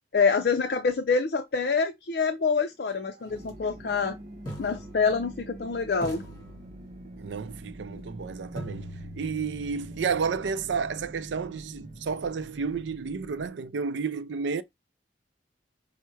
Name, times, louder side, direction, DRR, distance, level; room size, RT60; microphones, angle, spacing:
voice 1, 0.1-4.2 4.6-6.2 7.9-8.0, left 5 dB, 60° left, 0.5 m, -26 dB
sound 1, 3.3-13.5, right 1 dB, 40° right, 0.8 m, -45 dB
sound 2, 3.4-3.5 4.5-5.6 6.0-7.3 8.6-12.5, equal, 25° left, 2.1 m, -44 dB
voice 2, 7.2-14.6, right 5 dB, 90° right, 0.4 m, -31 dB
5.6 x 2.1 x 4.5 m
head